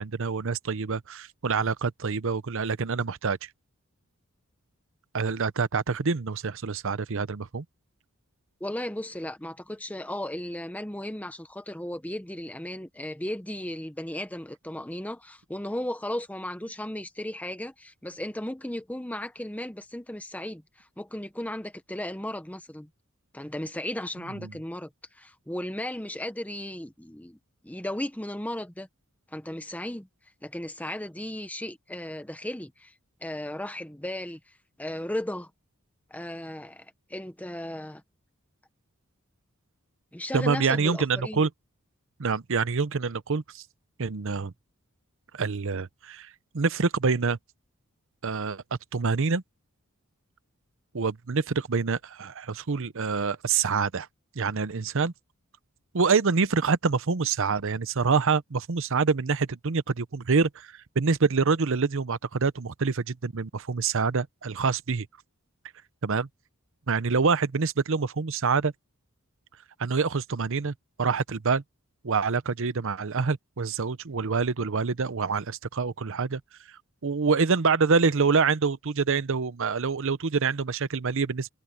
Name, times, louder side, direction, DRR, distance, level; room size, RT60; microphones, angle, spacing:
voice 1, 0.0-3.4 5.1-7.6 24.4-24.5 40.3-41.5 42.2-43.6 44.0-44.5 45.4-46.3 46.5-47.4 48.2-48.6 48.9-49.4 50.9-54.1 54.4-55.1 55.9-60.5 61.0-65.1 66.0-66.3 66.9-68.7 69.8-71.6 72.0-76.4 77.0-81.5, right 5 dB, 65° right, 0.8 m, -26 dB
voice 2, 8.6-20.6 21.0-22.9 23.3-24.9 25.1-27.4 27.6-28.9 29.3-30.1 30.4-32.9 33.2-34.4 34.8-35.5 36.1-38.0 40.1-41.5, left 1 dB, 5° left, 1.0 m, -35 dB
head